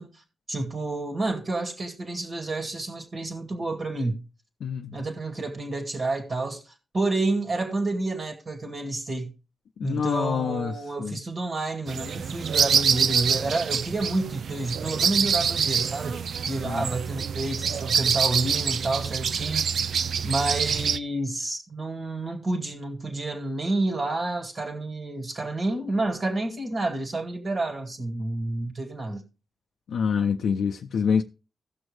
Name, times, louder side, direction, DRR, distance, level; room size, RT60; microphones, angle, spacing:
voice 1, 0.0-4.2 4.9-9.3 9.8-29.2, right 2 dB, 45° right, 1.6 m, -29 dB
voice 2, 4.6-5.0 9.8-11.1 16.6-16.8 29.9-31.2, left 6 dB, 80° left, 0.4 m, -26 dB
sound 1, 11.9-21.0, right 7 dB, 75° right, 0.4 m, -26 dB
16.0 x 6.2 x 3.2 m
cardioid pair, 85°, 0 cm